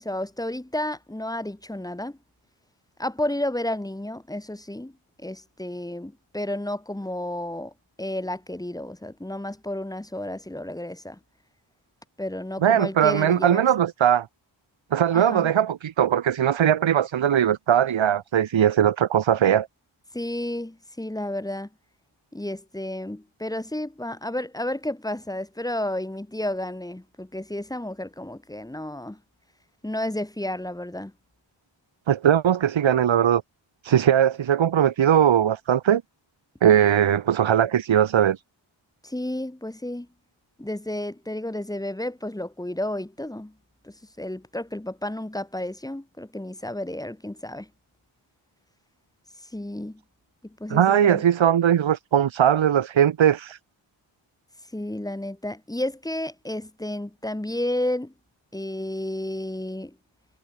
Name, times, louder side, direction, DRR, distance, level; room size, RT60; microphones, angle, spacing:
voice 1, 0.0-2.2 3.0-4.9 5.2-7.7 8.0-11.2 12.2-13.7 15.1-15.5 20.1-21.7 22.3-29.2 29.8-31.1 39.0-40.1 40.6-43.5 43.8-47.7 49.5-50.0 50.4-51.2 54.7-58.1 58.5-60.0, left 1 dB, 10° left, 2.4 m, -31 dB
voice 2, 12.6-14.3 14.9-19.7 32.1-33.4 33.8-36.0 36.6-38.4 50.7-53.6, right 9 dB, 70° right, 1.4 m, -20 dB
wide cardioid pair, 165°, 47 cm